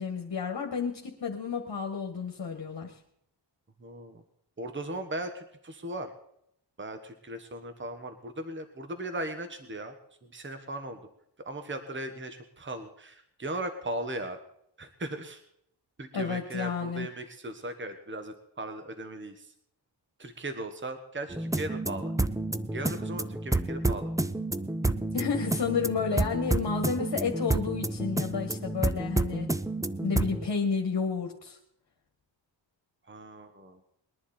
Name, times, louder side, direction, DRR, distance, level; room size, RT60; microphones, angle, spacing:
voice 1, 0.0-2.9 16.1-17.1 25.1-29.5 30.0-31.6, left 5 dB, 60° left, 2 dB, 1.8 m, -31 dB
voice 2, 3.8-4.2 4.6-6.1 6.8-9.9 10.2-11.0 11.4-14.4 14.8-15.4 16.0-19.5 20.2-22.1 22.7-24.1 33.1-33.8, right 1 dB, 25° right, 7 dB, 1.4 m, -38 dB
sound 1, 21.3-30.5, right 2 dB, 10° right, 0.5 m, -30 dB
21.0 x 11.0 x 4.3 m, 0.73 s
wide cardioid pair, 100°, 45 cm